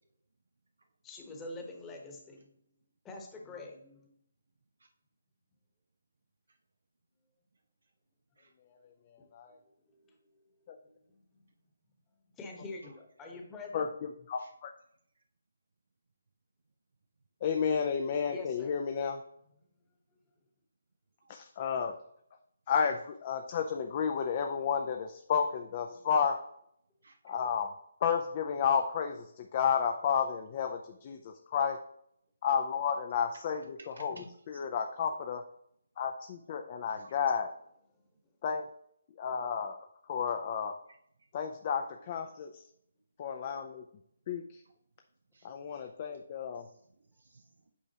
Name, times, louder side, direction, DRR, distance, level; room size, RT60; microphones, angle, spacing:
voice 1, 1.0-2.5 3.0-4.1 9.9-10.1 10.8-11.2 12.4-13.9 18.3-18.7 25.9-26.1 34.1-34.3, left 2 dB, 10° left, 1 dB, 1.1 m, -45 dB
voice 2, 14.3-14.7 17.4-19.2 21.3-21.9 22.7-26.4 27.2-27.7 28.0-31.8 32.4-34.2 34.5-35.4 36.0-37.5 38.4-38.7 39.2-39.8 40.0-40.8 41.3-42.6 43.2-43.8 44.3-44.6 45.4-46.7, left 7 dB, 35° left, 4 dB, 0.5 m, -31 dB
voice 3, 27.0-27.3 33.4-34.1 34.5-34.6 36.9-37.1 45.3-45.7 46.5-47.7, right 3 dB, 80° right, 5 dB, 0.7 m, -58 dB
8.3 x 4.8 x 2.8 m, 0.69 s
hypercardioid pair, 160°, 0 cm